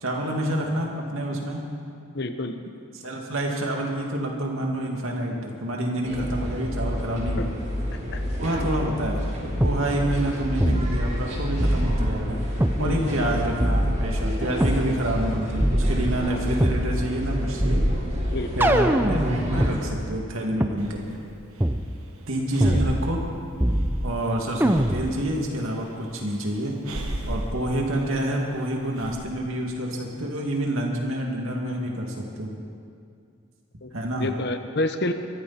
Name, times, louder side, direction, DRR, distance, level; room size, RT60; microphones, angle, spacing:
voice 1, 0.0-1.6 3.0-7.5 8.4-12.5 12.8-17.8 18.6-21.2 22.3-23.2 24.0-26.8 27.3-32.5 33.9-34.3, right 1 dB, 70° right, 0 dB, 2.6 m, -28 dB
voice 2, 2.1-2.7 7.4-7.5 7.9-8.2 8.5-8.6 12.8-13.1 18.3-18.7 22.7-22.8 33.8-33.9 34.2-35.1, left 2 dB, 50° left, 8 dB, 0.9 m, -29 dB
regional train ride zurich, 6.0-19.9, equal, 35° right, 4.0 m, -29 dB
sound 1, 9.6-9.8 10.6-11.3 11.6-12.8 13.6-14.8 15.6-16.8 17.6-19.8 20.6-20.7 21.6-21.8 22.6-23.3 23.6-24.2 24.6-25.2, right 1 dB, 10° right, 0.5 m, -23 dB
Breathing, 20.8-29.2, right 1 dB, 90° right, 1.7 m, -37 dB
23.0 x 14.0 x 4.4 m, 2.3 s
head